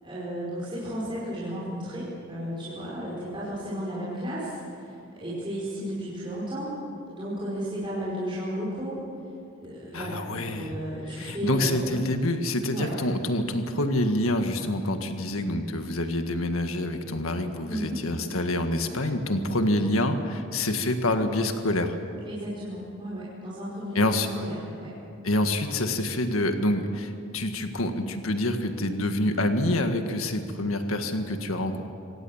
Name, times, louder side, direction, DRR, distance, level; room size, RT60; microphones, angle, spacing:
voice 1, 0.0-4.9 5.2-6.7 7.1-9.0 9.6-12.1 12.7-12.9 17.7-18.0 22.2-24.9, equal, 25° right, -8 dB, 5.1 m, -34 dB
voice 2, 9.9-10.7 11.2-22.0 24.0-24.3 25.2-31.8, left 1 dB, 85° left, 6 dB, 1.7 m, -27 dB
26.0 x 18.0 x 7.3 m, 2.5 s
head